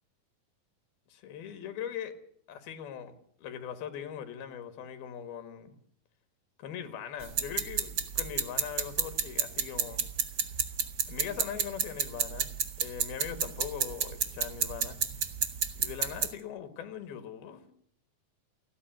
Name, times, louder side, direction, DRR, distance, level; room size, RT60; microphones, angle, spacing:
voice 1, 1.1-2.2 2.5-5.8 6.6-10.0 11.1-12.5 12.8-15.0 15.8-17.7, left 9 dB, 80° left, 10 dB, 3.6 m, -40 dB
sound 1, 7.2-16.3, right 7 dB, 80° right, 0.9 m, -31 dB
29.0 x 9.9 x 9.3 m, 0.65 s
omnidirectional pair, 4.3 m